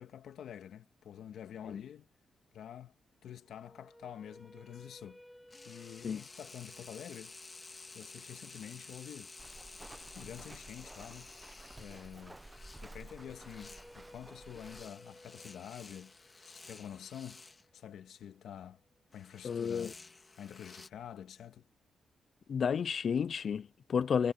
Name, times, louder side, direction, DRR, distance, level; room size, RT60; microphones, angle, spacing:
voice 1, 0.0-2.1 2.5-2.9 3.2-5.2 5.7-7.4 7.9-9.3 10.2-11.3 11.8-12.4 12.8-16.1 16.4-17.4 17.7-18.8 19.1-20.0 20.4-21.6, left 9 dB, 85° left, 1.7 m, -48 dB
sound 1, 3.4-9.5 12.8-18.9, equal, 5° left, 4.9 m, -59 dB
sound 2, 5.5-17.6 19.1-20.9, left 3 dB, 30° left, 1.7 m, -53 dB
Walk footsteps, 9.4-14.9, right 2 dB, 15° right, 0.8 m, -52 dB
voice 2, 19.4-19.9 22.5-24.3, left 7 dB, 60° left, 0.3 m, -32 dB
cardioid pair, 85°, 0 cm